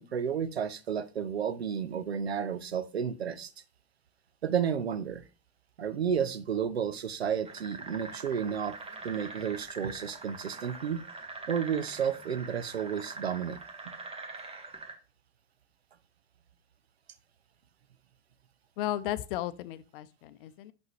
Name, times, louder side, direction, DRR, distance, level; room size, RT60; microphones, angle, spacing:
voice 1, 0.0-3.5 4.4-5.2 5.8-8.8 9.0-11.0 11.5-13.6 13.9-14.0, right 7 dB, 90° right, 0.5 m, -32 dB
sound 1, 7.4-14.9, right 3 dB, 20° right, 1.1 m, -44 dB
voice 2, 18.8-20.7, left 13 dB, 60° left, 0.6 m, -35 dB
6.0 x 5.6 x 3.1 m
figure-of-eight pair, 80°, 31 cm